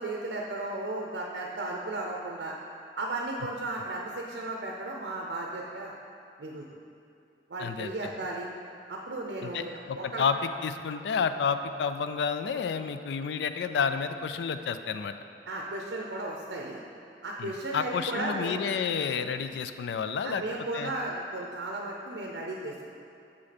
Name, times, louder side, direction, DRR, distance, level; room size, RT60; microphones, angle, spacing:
voice 1, 0.0-2.5 3.0-5.9 6.4-6.6 7.5-8.5 8.9-10.2 15.5-16.8 17.2-18.6 20.2-23.0, right 2 dB, 80° right, -1 dB, 0.6 m, -35 dB
voice 2, 7.6-7.9 9.4-15.1 17.4-20.4 20.7-20.9, left 6 dB, 75° left, 10 dB, 0.3 m, -30 dB
7.0 x 5.1 x 4.2 m, 2.6 s
head